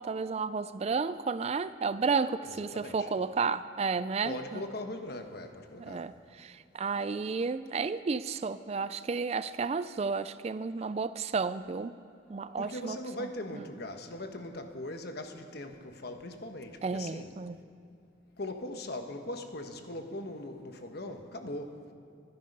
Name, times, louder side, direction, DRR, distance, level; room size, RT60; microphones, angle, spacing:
voice 1, 0.0-4.6 5.8-11.9 12.3-13.3 13.5-13.6 16.8-17.6, right 4 dB, 30° right, 14 dB, 0.3 m, -32 dB
voice 2, 2.4-3.1 4.2-6.1 12.6-17.3 18.4-21.9, left 1 dB, 55° left, 6 dB, 1.2 m, -40 dB
24.0 x 10.0 x 5.4 m, 2.5 s
head